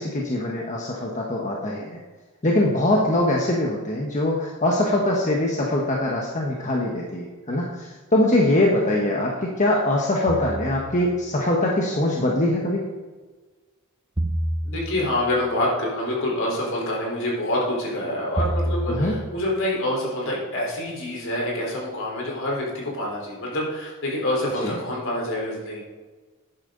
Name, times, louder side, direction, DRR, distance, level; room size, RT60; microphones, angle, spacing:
voice 1, 0.0-2.0 2.4-12.8 18.9-19.1 24.6-24.7, left 1 dB, 35° left, -1 dB, 1.3 m, -22 dB
sound 1, 10.3-11.1 14.2-15.2 18.4-19.3, right 1 dB, 20° right, 0.8 m, -27 dB
voice 2, 14.6-25.8, left 1 dB, 65° left, -3 dB, 4.1 m, -26 dB
12.0 x 10.0 x 3.9 m, 1.3 s
head